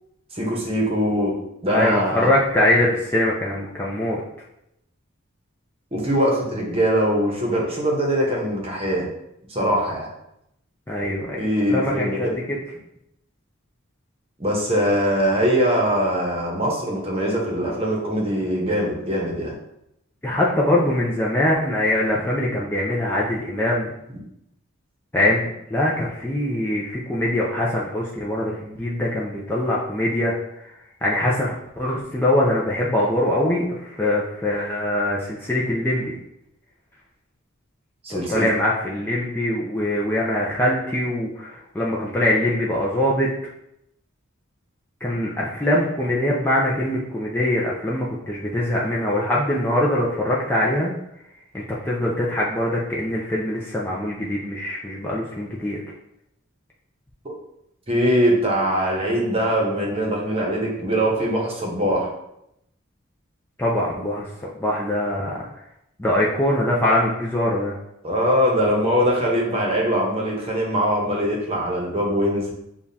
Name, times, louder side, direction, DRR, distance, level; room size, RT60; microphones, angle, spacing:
voice 1, 0.3-1.3 1.6-2.3 5.9-9.1 9.5-10.1 11.4-12.4 14.4-19.5 38.0-38.5 57.2-57.3 57.9-62.1 68.0-72.5, equal, 30° right, -2 dB, 0.9 m, -22 dB
voice 2, 1.7-4.2 10.9-11.4 11.7-12.6 20.2-23.9 25.1-30.3 31.0-36.1 38.1-43.3 45.0-50.9 51.5-55.8 63.6-64.3 64.5-65.5 66.0-67.7, left 1 dB, 10° left, -5 dB, 0.4 m, -23 dB
6.9 x 2.4 x 2.7 m, 0.81 s
head